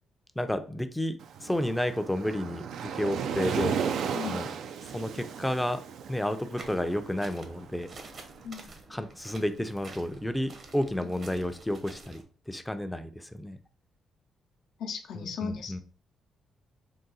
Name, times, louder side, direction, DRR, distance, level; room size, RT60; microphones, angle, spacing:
voice 1, 0.4-2.6 2.9-3.8 4.2-4.5 4.9-5.8 6.1-7.9 8.9-13.6 15.1-15.8, left 1 dB, 5° left, 9 dB, 0.4 m, -31 dB
Waves surf, 1.2-8.3, right 7 dB, 75° right, 0.3 m, -35 dB
sound 1, 6.6-12.2, right 3 dB, 50° right, 0.7 m, -49 dB
voice 2, 14.8-15.8, left 5 dB, 80° left, 3 dB, 0.7 m, -36 dB
3.8 x 2.3 x 3.9 m, 0.42 s
cardioid pair, 85°, 0 cm